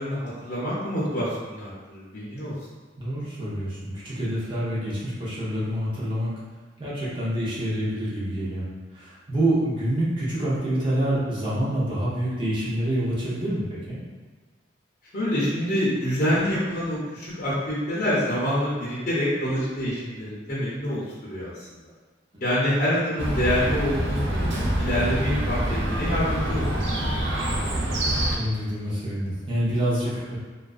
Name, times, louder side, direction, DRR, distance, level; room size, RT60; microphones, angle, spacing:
voice 1, 0.0-2.6 15.1-21.7 22.4-25.6 25.9-26.7 27.5-27.7, equal, 45° left, -9 dB, 0.6 m, -26 dB
voice 2, 3.0-6.3 6.8-14.0 22.3-22.4 28.3-30.4, right 1 dB, 25° right, -8 dB, 0.7 m, -27 dB
Chirp tweet, 23.2-28.4, right 1 dB, 65° right, 0.4 m, -26 dB
2.4 x 2.2 x 2.3 m, 1.4 s
head